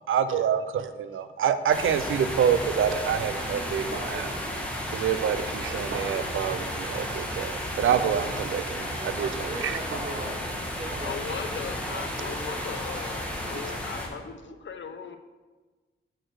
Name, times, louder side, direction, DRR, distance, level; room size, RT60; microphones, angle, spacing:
voice 1, 0.0-4.3 4.9-9.8, right 8 dB, 90° right, 12 dB, 0.5 m, -27 dB
sound 1, 1.7-14.1, equal, 5° left, 1.4 m, -33 dB
sound 2, 3.9-11.7, right 2 dB, 75° right, 1.2 m, -41 dB
voice 2, 9.1-12.1, right 2 dB, 35° right, 3 dB, 1.1 m, -40 dB
voice 3, 11.0-15.2, left 6 dB, 70° left, 8 dB, 0.7 m, -38 dB
6.5 x 4.5 x 6.3 m, 1.3 s
wide cardioid pair, 90°, 20 cm